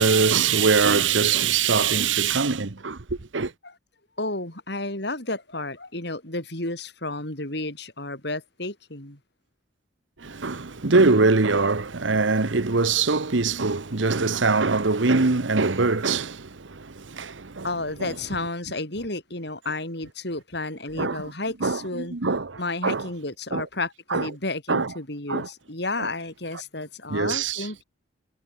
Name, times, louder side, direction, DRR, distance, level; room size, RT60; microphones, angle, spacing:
voice 1, 0.0-3.5 10.2-17.7 18.0-18.1 21.0-21.2 21.6-23.1 23.5-23.6 24.1-24.3 24.7-24.9 25.3-25.5 26.0-26.1 27.1-27.7, right 4 dB, 85° right, 1.2 m, -23 dB
voice 2, 4.2-9.2 17.6-22.2 22.6-27.8, left 2 dB, 60° left, 6.0 m, -32 dB
head